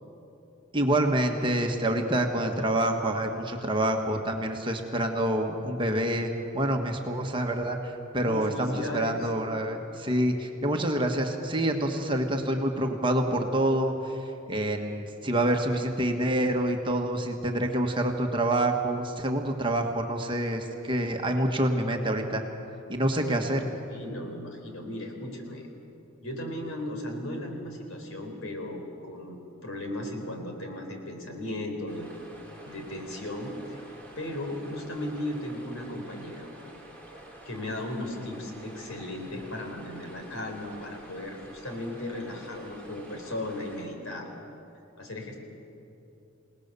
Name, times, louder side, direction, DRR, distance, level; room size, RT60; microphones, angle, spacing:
voice 1, 0.7-22.4 22.9-23.7, right 1 dB, 25° right, 3 dB, 1.5 m, -27 dB
voice 2, 8.2-9.3 23.1-25.7 26.2-32.1 32.7-33.8 34.2-36.5 37.4-44.3 45.0-45.4, left 1 dB, 75° left, 3 dB, 4.0 m, -36 dB
sound 1, 31.9-43.8, right 1 dB, 5° left, 3.5 m, -48 dB
28.5 x 18.5 x 6.8 m, 2.9 s
head